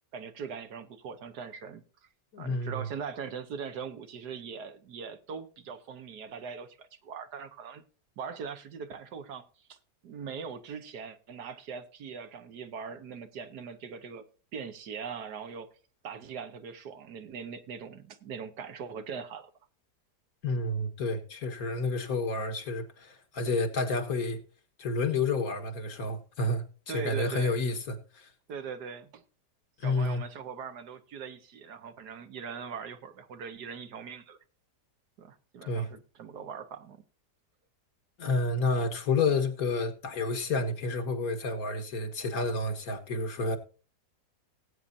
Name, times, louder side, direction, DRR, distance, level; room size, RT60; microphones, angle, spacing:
voice 1, 0.1-2.1 2.4-7.8 8.2-9.4 9.7-9.8 10.0-14.2 14.5-15.7 16.0-19.5 26.9-27.6 28.5-29.2 29.8-34.4 35.2-37.0, right 6 dB, 75° right, 1.6 m, -41 dB
voice 2, 2.3-2.9 20.4-24.4 24.8-28.3 29.8-30.2 35.7-35.9 38.2-43.6, left 3 dB, 60° left, 1.9 m, -30 dB
18.5 x 8.6 x 2.6 m
omnidirectional pair, 1.8 m